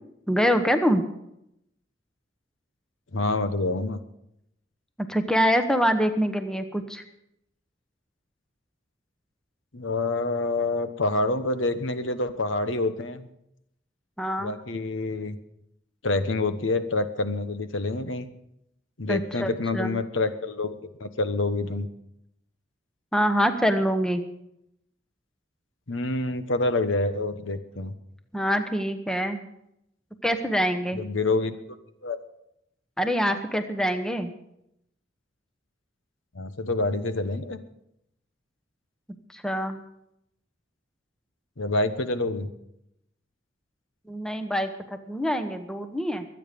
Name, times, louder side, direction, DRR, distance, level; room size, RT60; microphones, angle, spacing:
voice 1, 0.3-1.0 5.1-7.0 14.2-14.5 19.1-19.9 23.1-24.2 28.3-29.5 30.2-31.0 33.0-34.3 39.3-39.8 44.1-44.7 45.1-46.3, equal, 5° left, 8 dB, 1.0 m, -25 dB
voice 2, 3.1-4.0 9.7-13.3 14.4-15.4 16.0-18.3 19.0-21.9 25.9-27.9 30.9-31.5 32.0-32.2 36.3-37.6 41.6-42.5, left 2 dB, 85° left, 10 dB, 1.1 m, -27 dB
23.5 x 9.1 x 5.2 m, 0.80 s
head